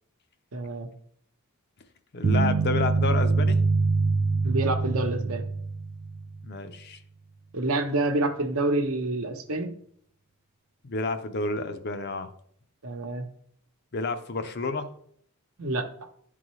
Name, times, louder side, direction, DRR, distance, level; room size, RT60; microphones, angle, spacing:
voice 1, 0.5-0.9 4.4-5.5 7.5-9.7 12.8-13.3 15.6-15.9, right 2 dB, 75° right, 6 dB, 0.9 m, -27 dB
voice 2, 2.1-3.6 6.4-7.0 10.8-12.3 13.9-14.9, left 3 dB, 50° left, 9 dB, 0.6 m, -30 dB
sound 1, 2.2-6.4, right 4 dB, 30° right, 0.3 m, -24 dB
11.5 x 3.9 x 3.1 m, 0.65 s
head